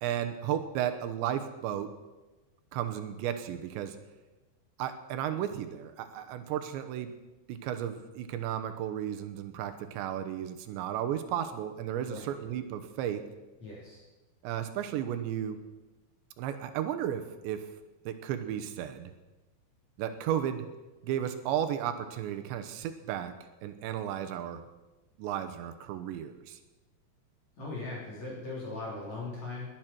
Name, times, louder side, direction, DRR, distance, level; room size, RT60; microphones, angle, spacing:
voice 1, 0.0-1.9 2.7-4.0 4.8-7.1 7.5-13.2 14.4-15.6 16.4-17.7 18.1-19.1 20.0-20.6 21.0-23.3 23.6-24.6 25.2-26.6, right 10 dB, 90° right, 9 dB, 3.2 m, -34 dB
voice 2, 13.6-14.0 27.6-29.6, left 3 dB, 40° left, -5 dB, 4.5 m, -39 dB
20.0 x 10.5 x 6.1 m, 1.1 s
omnidirectional pair, 5.1 m